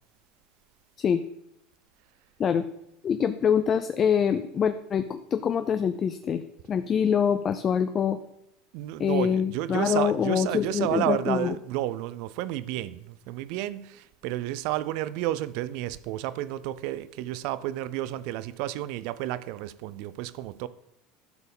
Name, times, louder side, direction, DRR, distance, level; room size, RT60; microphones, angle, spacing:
voice 1, 3.0-6.4 6.7-8.2 9.0-11.5, left 7 dB, 35° left, 0.5 m, -25 dB
voice 2, 8.7-20.7, right 14 dB, 65° right, 0.5 m, -31 dB
12.5 x 4.5 x 5.3 m
supercardioid pair, 105°, 0 cm